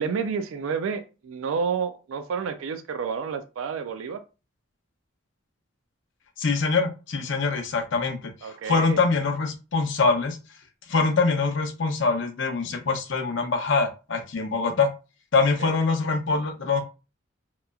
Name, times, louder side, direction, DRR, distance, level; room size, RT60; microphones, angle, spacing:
voice 1, 0.0-4.2 8.4-9.0 15.6-15.8, right 6 dB, 75° right, 0.3 m, -30 dB
voice 2, 6.4-10.4 10.9-14.9 15.3-16.8, left 4 dB, 65° left, 0.6 m, -24 dB
2.9 x 2.3 x 2.3 m
head